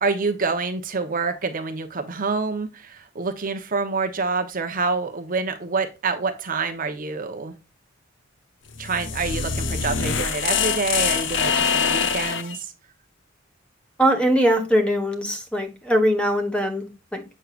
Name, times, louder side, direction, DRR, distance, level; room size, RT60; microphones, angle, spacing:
voice 1, 0.0-7.5 8.8-12.7, right 4 dB, 45° right, 6 dB, 0.9 m, -27 dB
sound 1, 8.7-12.6, left 6 dB, 65° left, 0.8 m, -24 dB
voice 2, 14.0-17.2, equal, 5° left, 5 dB, 1.3 m, -21 dB
8.0 x 6.4 x 2.4 m, 0.28 s
head